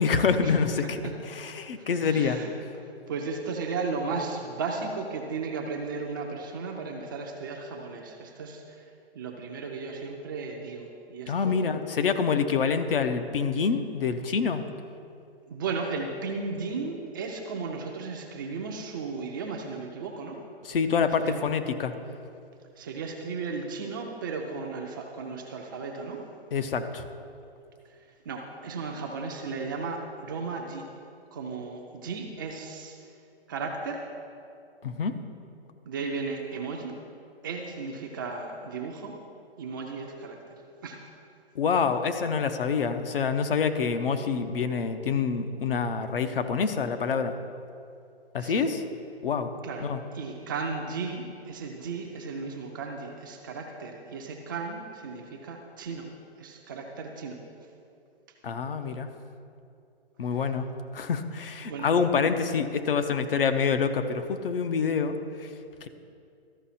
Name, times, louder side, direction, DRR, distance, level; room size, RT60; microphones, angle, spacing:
voice 1, 0.0-2.4 11.3-14.6 20.6-21.9 26.5-27.0 34.8-35.1 41.6-47.4 48.3-48.8 49.2-49.5 49.8-50.0 58.4-59.1 60.2-60.7 60.9-65.5, left 5 dB, 60° left, 8 dB, 0.7 m, -26 dB
voice 2, 1.0-1.4 1.8-2.5 2.8-8.8 9.1-11.8 15.5-20.4 21.2-21.4 22.8-26.2 28.3-30.9 31.3-33.0 33.5-34.0 35.9-37.0 37.4-39.1 39.6-41.0 48.4-48.7 49.6-49.9 50.1-56.1 56.4-57.4 61.7-61.9, right 4 dB, 20° right, 1 dB, 0.5 m, -35 dB
13.0 x 5.4 x 4.2 m, 2.5 s
hypercardioid pair, 140°, 32 cm